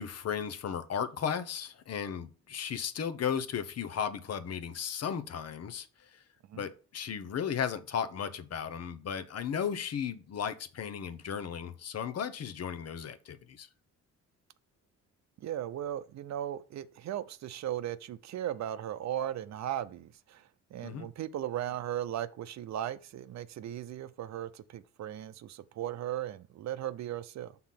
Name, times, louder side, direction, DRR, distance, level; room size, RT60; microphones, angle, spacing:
voice 1, 0.0-6.2 6.5-13.7 20.8-21.1, left 7 dB, 55° left, 0.9 m, -35 dB
voice 2, 15.4-27.6, right 11 dB, 65° right, 0.6 m, -37 dB
5.9 x 3.9 x 5.8 m
cardioid pair, 90°, 30 cm